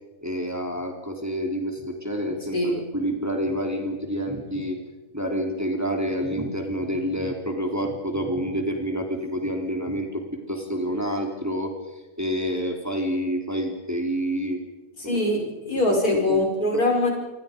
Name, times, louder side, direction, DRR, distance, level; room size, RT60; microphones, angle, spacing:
voice 1, 0.2-4.8 5.1-14.6 15.0-15.2 15.9-16.0 16.3-16.4, equal, 10° right, 2 dB, 3.6 m, -28 dB
voice 2, 15.0-17.1, left 1 dB, 75° left, 0 dB, 6.5 m, -23 dB
27.5 x 26.5 x 5.3 m, 1.1 s
omnidirectional pair, 1.6 m